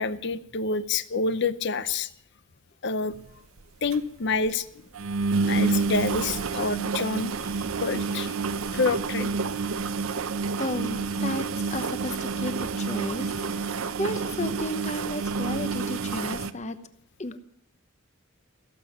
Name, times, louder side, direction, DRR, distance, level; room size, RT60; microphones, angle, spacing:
voice 1, 0.0-2.1 2.8-3.1 3.8-4.7 5.5-8.4 8.7-9.3, left 4 dB, 55° left, 14 dB, 0.7 m, -28 dB
sound 1, 3.1-3.3 3.6-3.7 3.9-4.0 4.3-4.5 4.9-16.5, right 4 dB, 90° right, 0.8 m, -29 dB
voice 2, 10.6-13.3 13.6-16.8 17.2-17.4, left 1 dB, 35° left, 11 dB, 1.0 m, -33 dB
17.0 x 7.8 x 9.9 m, 0.72 s
head